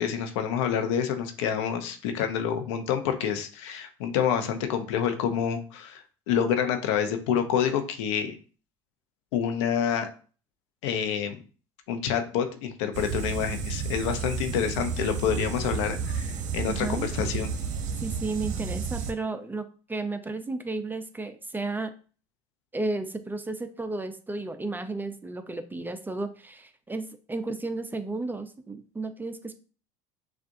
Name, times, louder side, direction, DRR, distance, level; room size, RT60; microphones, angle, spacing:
voice 1, 0.0-8.4 9.3-10.1 10.8-11.4 11.9-17.5, left 8 dB, 75° left, 6 dB, 0.8 m, -28 dB
sound 1, 12.9-19.1, right 6 dB, 55° right, 0.8 m, -32 dB
voice 2, 16.7-17.1 18.0-21.9 22.7-29.5, right 3 dB, 10° right, 9 dB, 0.5 m, -33 dB
6.4 x 2.5 x 2.6 m, 0.39 s
hypercardioid pair, 85°, 15 cm